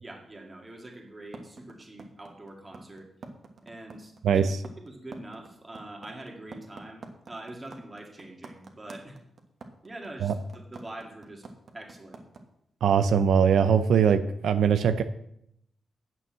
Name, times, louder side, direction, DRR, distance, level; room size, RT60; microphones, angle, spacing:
voice 1, 0.0-3.1 3.6-9.2 9.8-11.4 11.7-12.2, right 1 dB, 20° right, 1 dB, 2.0 m, -44 dB
sound 1, 1.3-12.4, right 3 dB, 50° right, 1.3 m, -45 dB
voice 2, 12.8-15.0, right 7 dB, 90° right, 10 dB, 0.6 m, -21 dB
9.1 x 7.0 x 7.5 m, 0.76 s
wide cardioid pair, 150°, 0 cm